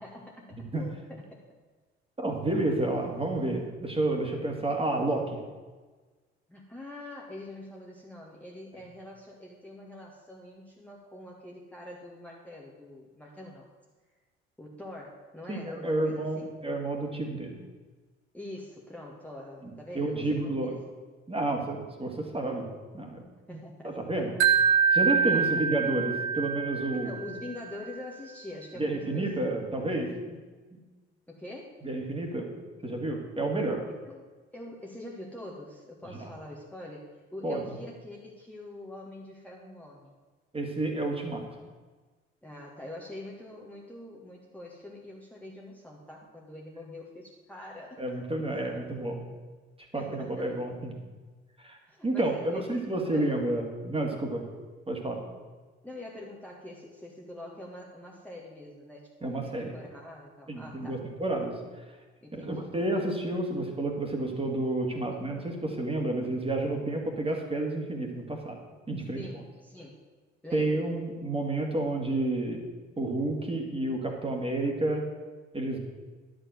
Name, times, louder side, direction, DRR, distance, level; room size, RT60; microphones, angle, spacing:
voice 1, 0.0-1.4 6.5-13.7 14.6-16.5 18.3-20.7 23.5-24.0 25.1-25.6 26.9-29.5 31.3-31.8 34.1-37.1 37.3-40.1 42.4-48.9 49.9-50.6 51.9-53.4 55.8-61.0 62.2-62.7 69.1-70.0 70.4-70.8, left 1 dB, 5° left, -3 dB, 1.7 m, -44 dB
voice 2, 0.5-0.8 2.2-5.4 15.5-17.6 19.9-20.8 21.3-22.7 22.9-23.2 23.5-23.6 23.8-24.3 24.9-27.1 28.8-30.4 30.7-30.8 31.8-32.5 32.8-33.8 36.2-36.3 37.4-37.6 40.5-41.4 48.0-49.2 49.9-50.9 51.6-51.8 52.0-54.4 54.9-55.2 59.2-59.7 60.5-61.5 62.3-68.6 68.9-69.4 70.5-72.6 73.0-75.0 75.5-75.8, right 2 dB, 15° right, 2 dB, 2.3 m, -30 dB
Wind chime, 24.4-27.5, right 6 dB, 75° right, 1.0 m, -25 dB
11.0 x 5.2 x 7.9 m, 1.3 s
figure-of-eight pair, 55°, 33 cm